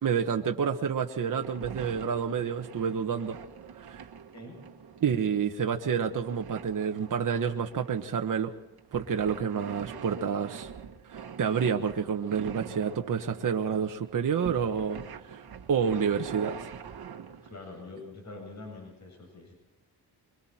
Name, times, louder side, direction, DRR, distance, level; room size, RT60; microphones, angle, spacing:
voice 1, 0.0-3.4 3.8-4.1 5.0-8.5 8.9-10.7 11.1-15.4 15.7-16.6, right 7 dB, 55° right, 4 dB, 1.2 m, -29 dB
sound 1, 1.2-17.6, right 7 dB, 70° right, 1.6 m, -45 dB
voice 2, 17.4-19.5, left 2 dB, 45° left, 1 dB, 7.6 m, -45 dB
25.0 x 24.0 x 4.3 m, 0.97 s
wide cardioid pair, 115°, 39 cm